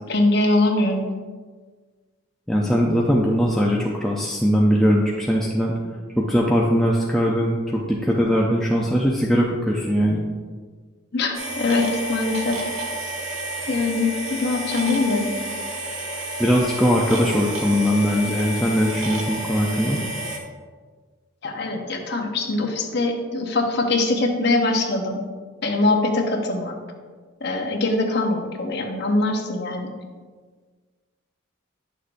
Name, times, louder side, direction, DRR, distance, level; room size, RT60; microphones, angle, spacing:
voice 1, 0.1-1.0 11.1-12.6 13.7-15.3 21.4-25.2 25.6-26.8 27.4-29.9, left 2 dB, 55° left, 2 dB, 0.9 m, -22 dB
voice 2, 2.5-5.7 6.2-10.2 16.4-20.0, equal, ahead, -4 dB, 0.5 m, -20 dB
sound 1, 11.3-20.4, right 1 dB, 85° right, 1.3 m, -30 dB
9.8 x 6.5 x 2.5 m, 1.5 s
head